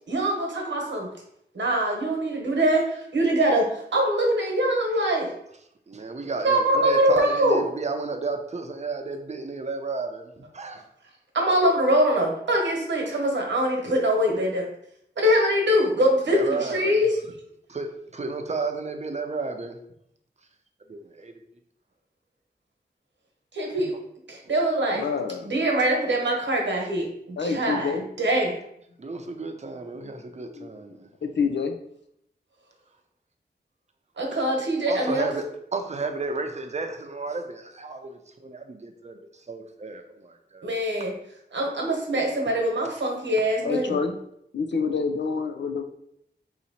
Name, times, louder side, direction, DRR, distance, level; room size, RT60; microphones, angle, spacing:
voice 1, 0.1-1.1 1.5-5.3 6.3-7.6 11.3-14.6 15.2-17.1 23.5-23.9 24.3-25.0 25.4-27.9 28.2-28.6 34.2-35.3 40.6-41.1 41.5-44.0, right 1 dB, 85° right, 0 dB, 1.1 m, -23 dB
voice 2, 5.9-10.8 16.3-17.0 17.7-19.8 20.9-21.3 23.8-23.9 29.0-31.1 34.3-34.4 34.9-40.7 42.5-42.6, right 3 dB, 40° right, 5 dB, 0.6 m, -33 dB
voice 3, 24.9-25.5 27.4-28.1 30.0-30.1 30.5-30.7 31.2-31.7 43.6-44.2 44.5-45.8, left 5 dB, 75° left, 5 dB, 0.5 m, -27 dB
4.1 x 2.9 x 4.1 m, 0.74 s
wide cardioid pair, 75°, 18 cm